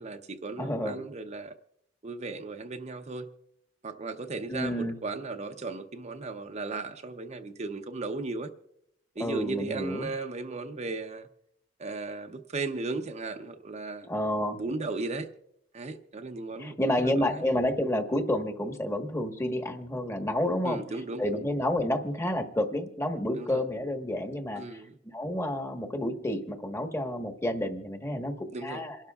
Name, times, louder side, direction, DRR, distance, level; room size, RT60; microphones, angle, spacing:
voice 1, 0.0-1.5 2.0-3.3 3.8-8.5 9.2-11.3 11.8-14.1 14.6-15.3 15.7-17.4 20.6-21.4 23.3-23.6 24.5-24.9 28.5-28.8, right 3 dB, 35° right, 0.6 m, -36 dB
voice 2, 0.6-1.0 4.5-4.9 9.2-10.1 14.1-14.6 16.6-20.8 21.2-24.6 25.1-28.3 28.6-29.0, left 1 dB, 15° left, 1.3 m, -29 dB
28.0 x 12.0 x 2.3 m
head